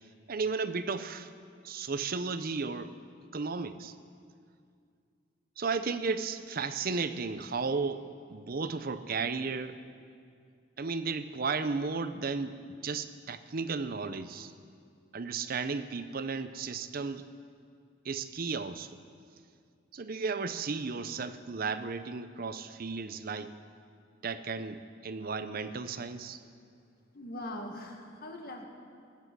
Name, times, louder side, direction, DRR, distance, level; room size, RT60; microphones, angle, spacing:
voice 1, 0.3-1.3 1.6-3.0 3.3-3.9 5.6-9.8 10.8-14.5 15.1-17.3 18.0-19.0 19.9-23.5 24.2-26.4, right 4 dB, 50° right, 12 dB, 0.6 m, -34 dB
voice 2, 27.1-28.7, left 1 dB, 50° left, 2 dB, 1.8 m, -41 dB
16.5 x 10.5 x 6.2 m, 2.3 s
head